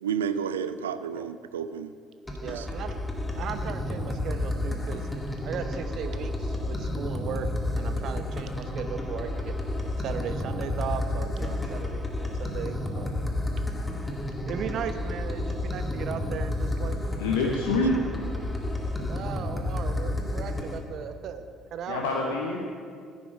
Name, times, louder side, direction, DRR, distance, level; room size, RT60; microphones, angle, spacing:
voice 1, 0.0-1.9 2.4-2.7, right 7 dB, 80° right, 12 dB, 0.4 m, -31 dB
sound 1, 2.3-20.8, left 1 dB, 10° left, 1.7 m, -31 dB
voice 2, 2.4-3.0 3.4-5.1 5.4-7.5 7.7-9.6 10.0-13.1 14.5-17.0 19.1-22.4, right 7 dB, 50° right, 9 dB, 0.8 m, -37 dB
voice 3, 17.2-18.0 18.8-19.1 21.9-22.6, left 3 dB, 70° left, 0 dB, 1.1 m, -27 dB
14.0 x 10.5 x 4.7 m, 2.2 s
figure-of-eight pair, 50°, 0 cm